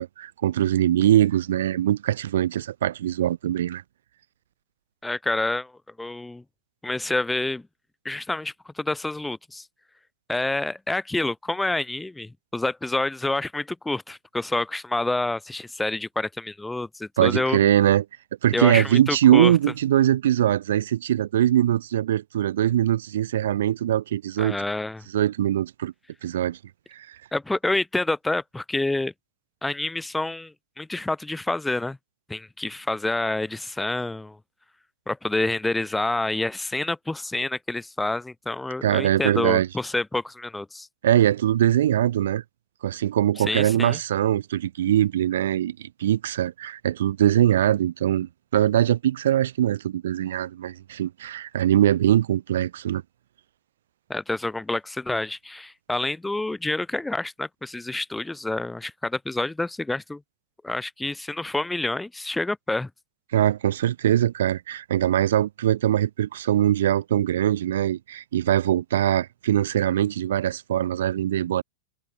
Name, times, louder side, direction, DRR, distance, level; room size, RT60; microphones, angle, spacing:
voice 1, 0.0-3.8 17.2-18.0 18.4-24.6 25.1-25.9 26.2-26.6 26.9-27.2 38.8-39.7 41.0-42.4 42.8-53.0 63.3-71.6, right 11 dB, 75° right, 0.6 m, -22 dB
voice 2, 5.0-5.7 6.0-6.4 6.8-7.7 8.0-9.7 10.3-17.6 18.5-19.5 24.4-25.0 27.3-29.1 29.6-32.0 32.3-34.4 35.1-40.9 43.4-44.0 54.1-60.2 60.6-62.9, left 2 dB, 5° left, 0.7 m, -28 dB
hypercardioid pair, 140°, 0 cm